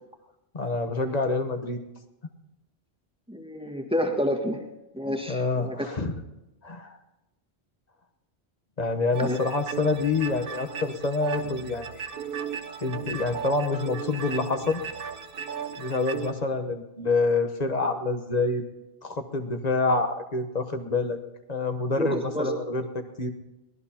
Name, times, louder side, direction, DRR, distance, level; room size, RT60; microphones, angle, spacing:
voice 1, 0.5-1.8 5.3-6.1 6.6-6.9 8.8-11.9 12.8-14.8 15.8-18.6 19.0-21.2 21.5-23.3, left 3 dB, 40° left, 7 dB, 1.2 m, -27 dB
voice 2, 3.3-4.6 4.9-5.9 9.2-9.4 22.0-22.5, equal, 5° right, 0 dB, 1.6 m, -29 dB
sound 1, 9.1-16.3, right 7 dB, 60° right, 1.1 m, -36 dB
23.5 x 18.5 x 2.9 m, 0.99 s
omnidirectional pair, 1.1 m